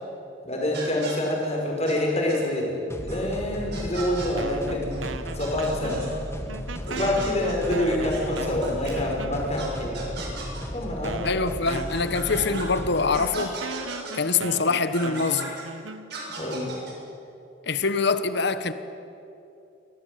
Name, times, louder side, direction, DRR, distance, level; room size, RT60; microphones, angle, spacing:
voice 1, 0.4-4.9 5.3-6.1 6.9-10.2 10.7-11.4 16.3-16.7, left 1 dB, 35° left, 5.9 m, -27 dB
sound 1, 0.7-1.1 1.9-2.0 2.3-2.4 3.1-3.2 3.7-4.3 4.9-5.0 5.3-6.1 6.9-8.9 9.6-9.7 9.9-10.6 11.7-12.6 13.1-14.1 14.9-15.6 16.1-16.9, right 3 dB, 60° right, 7.0 m, -37 dB
sound 2, 2.9-13.2, equal, 15° left, 1.7 m, -35 dB
sound 3, 4.4-6.2 6.5-9.7 10.4-10.5 11.0-16.4, right 4 dB, 85° right, 1.1 m, -38 dB
voice 2, 11.2-13.6 14.1-15.5 17.7-18.7, left 4 dB, 60° left, 1.2 m, -24 dB
24.0 x 18.0 x 9.3 m
head